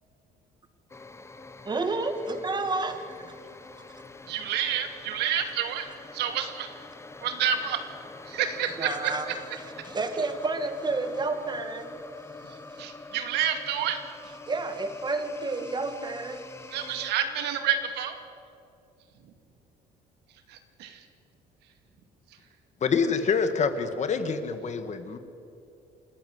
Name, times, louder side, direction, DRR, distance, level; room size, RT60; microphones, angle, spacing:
sound 1, 0.9-17.1, left 3 dB, 15° left, 1.1 m, -45 dB
voice 1, 1.6-3.0 8.8-9.3 9.8-11.9 14.5-16.5, right 3 dB, 25° right, 8 dB, 2.1 m, -30 dB
voice 2, 4.3-6.7 7.2-7.8 8.2-9.1 12.4-14.3 16.7-18.2 20.5-21.1, right 9 dB, 85° right, 7 dB, 2.2 m, -29 dB
voice 3, 22.8-25.2, left 5 dB, 45° left, 9 dB, 1.8 m, -26 dB
28.0 x 13.0 x 8.0 m, 2.7 s
cardioid pair, 110°, 17 cm